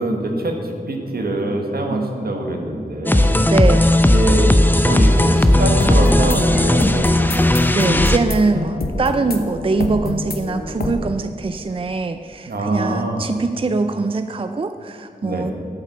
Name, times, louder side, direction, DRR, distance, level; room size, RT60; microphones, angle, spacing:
voice 1, 0.0-3.4 4.1-7.1 12.5-13.2 15.2-15.5, right 1 dB, 80° right, 2 dB, 1.5 m, -24 dB
sound 1, 3.1-8.2, left 1 dB, 10° left, 0.6 m, -15 dB
voice 2, 3.4-3.9 7.7-15.5, right 3 dB, 35° right, 8 dB, 0.4 m, -22 dB
sound 2, 5.4-10.9, left 2 dB, 75° left, 1.0 m, -26 dB
9.0 x 8.4 x 6.8 m, 2.5 s
wide cardioid pair, 85°, 16 cm